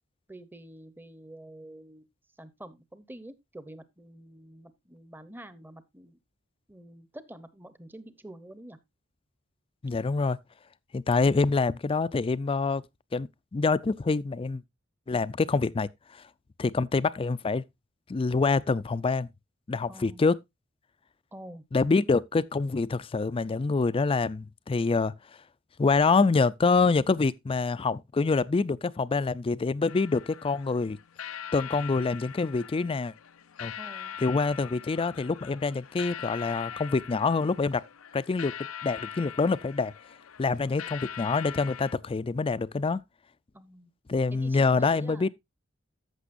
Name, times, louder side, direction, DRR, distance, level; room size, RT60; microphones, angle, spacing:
voice 1, 0.3-2.1 2.4-6.2 6.7-8.8 19.9-20.4 21.3-21.6 33.8-34.2 43.5-43.9 44.3-45.3, right 1 dB, 10° right, 0.8 m, -47 dB
voice 2, 9.8-10.4 10.9-12.8 13.1-14.6 15.1-16.2 16.6-17.6 18.1-19.3 19.7-20.4 21.7-25.1 25.8-31.0 31.5-33.1 33.6-33.7 34.2-37.8 38.1-38.5 38.8-39.9 40.4-43.0 44.1-45.3, left 4 dB, 25° left, 0.4 m, -26 dB
sound 1, 29.9-41.9, left 9 dB, 90° left, 0.6 m, -42 dB
14.5 x 6.0 x 2.5 m
head